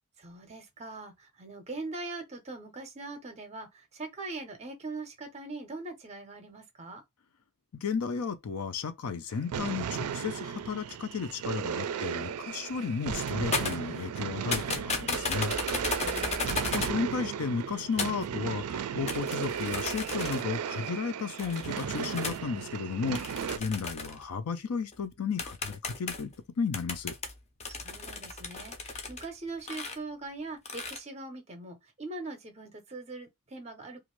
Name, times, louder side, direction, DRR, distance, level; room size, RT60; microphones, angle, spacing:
voice 1, 0.2-7.0 16.0-16.6 27.7-34.0, right 3 dB, 30° right, 0.6 m, -41 dB
voice 2, 7.7-15.6 16.7-27.1, left 5 dB, 80° left, 0.5 m, -34 dB
sound 1, 9.3-23.6, right 8 dB, 80° right, 0.4 m, -35 dB
sound 2, 12.8-12.9 13.1-14.2 14.5-17.0 18.0-18.3 19.1-20.6 21.4-22.4 23.1-24.2 24.9-25.0 25.4-26.3 26.7-29.3 29.6-30.0 30.7-31.0, left 3 dB, 30° left, 0.5 m, -35 dB
2.5 x 2.4 x 3.0 m
head